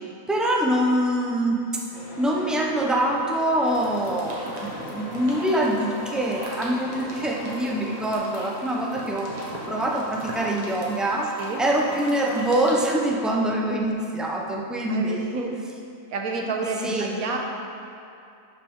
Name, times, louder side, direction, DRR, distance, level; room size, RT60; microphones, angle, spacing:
voice 1, 0.3-1.6 2.2-9.3 9.7-15.2 16.8-17.1, right 1 dB, ahead, -2 dB, 0.3 m, -24 dB
sound 1, 1.9-8.1, left 1 dB, 75° left, 1.7 m, -41 dB
sound 2, 3.6-12.7, equal, 30° right, 1.4 m, -38 dB
voice 2, 14.9-15.5 16.1-17.4, right 3 dB, 85° right, 1 dB, 1.4 m, -29 dB
11.5 x 5.9 x 3.6 m, 2.6 s
omnidirectional pair, 1.5 m